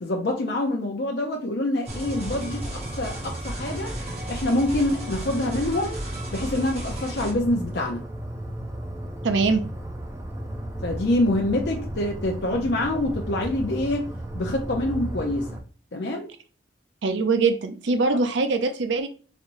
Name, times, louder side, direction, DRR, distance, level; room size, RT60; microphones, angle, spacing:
voice 1, 0.0-3.9 4.3-6.0 6.3-8.0 10.8-14.1 14.3-15.5 15.9-16.3, left 1 dB, 65° left, 0.6 m, -26 dB
sound 1, 1.8-7.3, right 1 dB, 35° right, 1.1 m, -36 dB
sound 2, 1.9-15.6, right 1 dB, 15° right, 0.4 m, -35 dB
voice 2, 9.2-9.6 17.0-19.1, right 4 dB, 80° right, 0.5 m, -22 dB
4.1 x 3.1 x 2.6 m
head